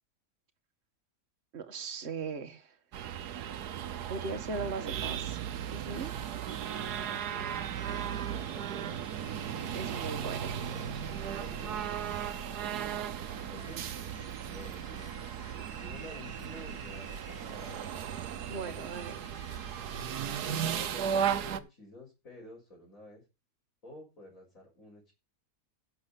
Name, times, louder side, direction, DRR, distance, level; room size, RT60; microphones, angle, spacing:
voice 1, 1.5-2.7 4.1-5.4 5.7-6.1 9.7-10.6 18.5-19.3, right 4 dB, 45° right, 7 dB, 1.6 m, -38 dB
sound 1, 2.9-21.6, right 8 dB, 85° right, 1.4 m, -36 dB
sound 2, 6.0-20.3, left 6 dB, 75° left, 1.8 m, -57 dB
voice 2, 7.9-9.3 10.5-12.0 13.2-13.8 14.5-15.1 15.5-18.0 20.1-23.2 23.8-25.1, left 1 dB, 55° left, -3 dB, 5.3 m, -51 dB
17.0 x 7.1 x 4.0 m, 0.28 s
omnidirectional pair, 1.6 m